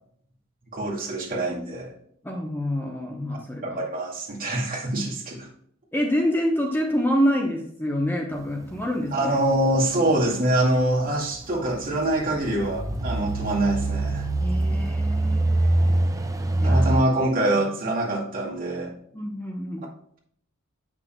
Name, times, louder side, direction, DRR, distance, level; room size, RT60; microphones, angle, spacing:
voice 1, 0.7-1.9 3.6-5.5 9.1-14.3 16.6-18.9, right 1 dB, 45° right, 2.3 m, -24 dB
voice 2, 2.2-3.8 5.9-9.4 14.4-16.1 16.6-17.0 19.1-19.9, equal, 10° left, 0.9 m, -27 dB
sound 1, 8.4-9.0 9.3-17.0, right 2 dB, 15° right, 0.5 m, -25 dB
8.4 x 6.2 x 2.2 m
head